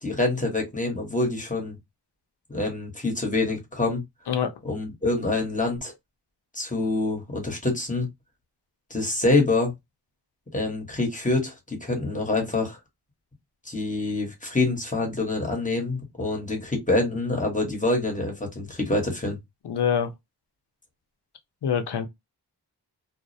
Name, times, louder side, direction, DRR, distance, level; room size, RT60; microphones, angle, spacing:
voice 1, 0.0-1.8 2.5-4.0 4.6-5.9 6.5-8.1 8.9-9.7 10.5-12.8 13.6-19.4, left 2 dB, 20° left, 1.0 m, -26 dB
voice 2, 19.6-20.1 21.6-22.1, left 8 dB, 80° left, 0.6 m, -25 dB
2.4 x 2.0 x 2.6 m
wide cardioid pair, 75°, 40 cm